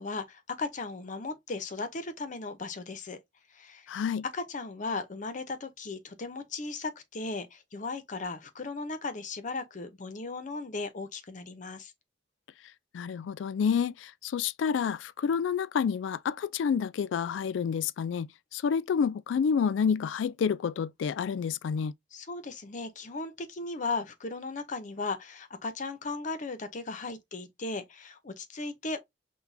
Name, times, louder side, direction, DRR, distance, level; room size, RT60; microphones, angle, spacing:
voice 1, 0.0-3.2 3.5-3.9 4.3-11.9 22.1-29.0, left 3 dB, 40° left, 0.6 m, -36 dB
voice 2, 3.9-4.2 12.9-21.9, left 6 dB, 75° left, 0.3 m, -29 dB
5.9 x 2.2 x 2.6 m
head